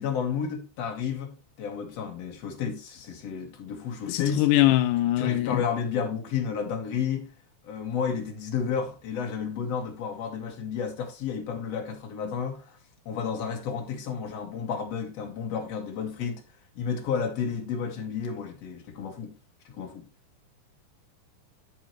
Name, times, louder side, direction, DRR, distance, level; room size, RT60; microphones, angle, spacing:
voice 1, 0.0-4.5 5.2-7.3 7.6-12.8 13.1-16.4 16.8-19.4 19.7-20.1, left 6 dB, 55° left, 2.8 m, -31 dB
voice 2, 4.1-5.6, left 15 dB, 90° left, 2.2 m, -22 dB
13.0 x 5.8 x 3.1 m
omnidirectional pair, 3.6 m